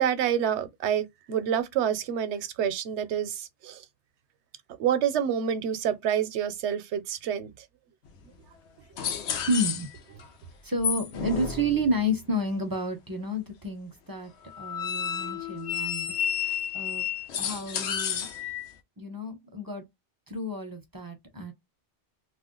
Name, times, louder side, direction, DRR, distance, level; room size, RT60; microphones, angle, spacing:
voice 1, 0.0-3.8 4.8-7.5, right 9 dB, 80° right, 0.9 m, -27 dB
sound 1, 8.2-8.3 9.0-10.2 10.8-12.2 14.4-18.7, left 8 dB, 85° left, 0.9 m, -31 dB
voice 2, 9.5-9.9 10.6-14.3 14.6-16.1 16.7-17.1 17.4-18.3 19.0-19.8 20.3-21.5, equal, 25° right, 0.5 m, -30 dB
2.4 x 2.1 x 3.6 m
omnidirectional pair, 1.1 m